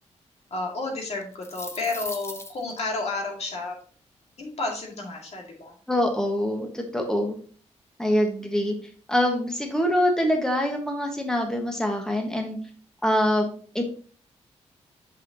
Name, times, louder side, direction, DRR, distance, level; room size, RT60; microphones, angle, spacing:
voice 1, 0.5-3.8 4.4-5.7, left 3 dB, 60° left, 1 dB, 2.0 m, -31 dB
sound 1, 1.2-2.8, left 2 dB, 20° left, 0.9 m, -38 dB
voice 2, 5.9-7.4 8.0-8.7 9.1-12.6 13.0-13.8, equal, 5° left, 2 dB, 1.3 m, -24 dB
6.4 x 5.8 x 2.8 m, 0.43 s
cardioid pair, 75°, 12 cm